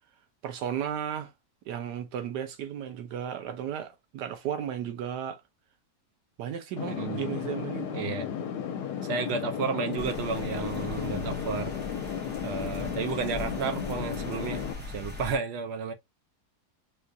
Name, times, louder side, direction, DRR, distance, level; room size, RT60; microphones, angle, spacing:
voice 1, 0.4-1.3 1.7-5.4 6.4-8.1, right 9 dB, 85° right, 1.3 m, -34 dB
sound 1, 6.8-14.7, left 8 dB, 80° left, 1.2 m, -34 dB
voice 2, 6.9-7.2 7.9-8.3 9.0-11.8 12.4-15.9, right 5 dB, 70° right, 0.6 m, -32 dB
sound 2, 10.0-15.4, left 2 dB, 10° right, 0.5 m, -40 dB
4.2 x 2.3 x 2.6 m
omnidirectional pair, 1.7 m